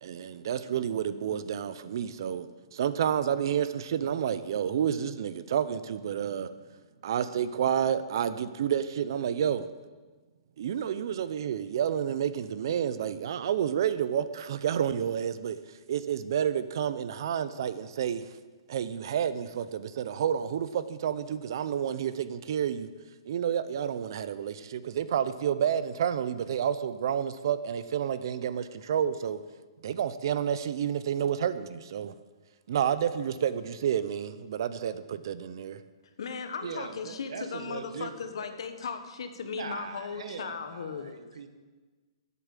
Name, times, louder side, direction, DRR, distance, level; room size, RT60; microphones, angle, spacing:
voice 1, 0.0-6.5 7.0-9.7 10.6-15.6 15.9-18.3 18.7-22.9 23.3-29.4 29.8-32.1 32.7-35.8, right 9 dB, 45° right, 13 dB, 0.6 m, -30 dB
voice 2, 36.0-41.1, left 6 dB, 65° left, 8 dB, 1.4 m, -37 dB
voice 3, 36.6-38.6 39.4-41.5, right 5 dB, 70° right, 9 dB, 1.3 m, -41 dB
11.0 x 8.4 x 7.4 m, 1.3 s
hypercardioid pair, 175°, 3 cm